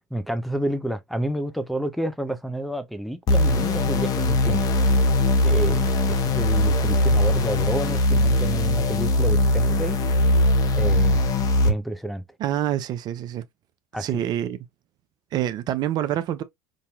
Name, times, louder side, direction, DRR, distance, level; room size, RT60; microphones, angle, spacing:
voice 1, 0.1-4.6 5.4-10.0 10.7-11.2 11.6-12.2 13.9-14.1, right 1 dB, ahead, 0.7 m, -29 dB
sound 1, 3.3-11.7, left 1 dB, 40° left, 1.0 m, -20 dB
voice 2, 12.4-13.4 14.0-14.6 15.3-16.4, right 11 dB, 45° right, 0.6 m, -26 dB
5.3 x 2.7 x 2.3 m
hypercardioid pair, 80°, 9 cm